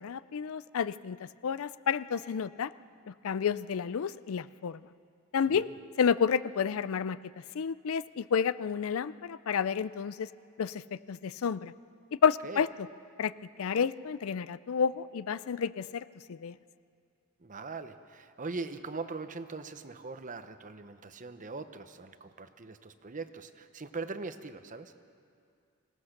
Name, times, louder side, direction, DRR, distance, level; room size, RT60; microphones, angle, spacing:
voice 1, 0.0-1.2 1.4-2.7 3.1-4.8 5.3-5.7 6.0-7.2 7.5-10.3 10.6-10.8 11.1-11.7 12.2-12.7 13.2-13.3 13.6-16.6, left 7 dB, 65° left, 17 dB, 0.4 m, -30 dB
voice 2, 17.4-24.9, right 3 dB, 35° right, 10 dB, 0.9 m, -41 dB
26.0 x 17.5 x 6.6 m, 2.4 s
head